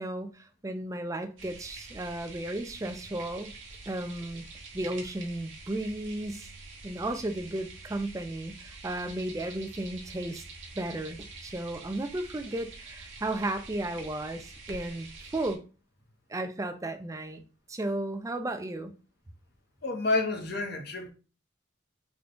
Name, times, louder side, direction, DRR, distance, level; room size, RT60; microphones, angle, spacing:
voice 1, 0.0-3.5 3.9-4.5 4.7-6.5 6.8-10.4 10.7-15.6 16.3-17.4 17.7-18.9, right 1 dB, 15° right, 0.3 m, -34 dB
sound 1, 1.4-15.6, right 3 dB, 65° right, 0.9 m, -46 dB
voice 2, 19.8-21.1, left 2 dB, 50° left, 0.8 m, -29 dB
3.7 x 2.2 x 3.7 m
head